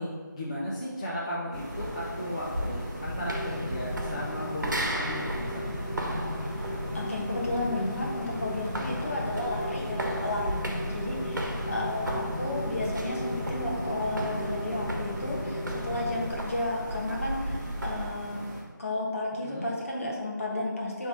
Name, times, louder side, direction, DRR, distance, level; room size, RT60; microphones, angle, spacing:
voice 1, 0.0-5.8 19.4-19.7, equal, 15° left, -8 dB, 0.5 m, -35 dB
sound 1, 1.5-18.6, equal, 15° right, 1.3 m, -39 dB
sound 2, 2.3-18.2, right 1 dB, 65° right, 1.1 m, -37 dB
Rain, 3.2-16.3, left 1 dB, 60° left, 1.2 m, -36 dB
voice 2, 6.4-18.4 18.8-21.1, left 2 dB, 40° left, -2 dB, 1.4 m, -33 dB
6.1 x 3.5 x 5.2 m, 1.5 s
figure-of-eight pair, 175°, 11 cm